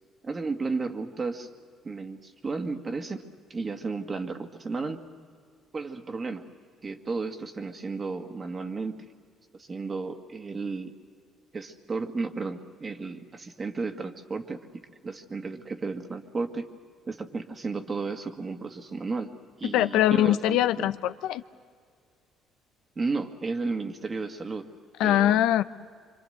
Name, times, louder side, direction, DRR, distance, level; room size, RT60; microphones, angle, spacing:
voice 1, 0.2-1.5 1.8-3.2 3.5-5.0 5.7-6.5 6.8-9.0 9.5-10.9 11.5-16.7 17.1-19.3 19.6-20.9 23.0-24.7 25.0-25.4, right 4 dB, 30° right, 6 dB, 1.9 m, -33 dB
voice 2, 19.7-21.4 25.0-25.6, left 12 dB, 80° left, 13 dB, 0.6 m, -22 dB
25.5 x 25.0 x 7.9 m, 2.1 s
cardioid pair, 90°, 0 cm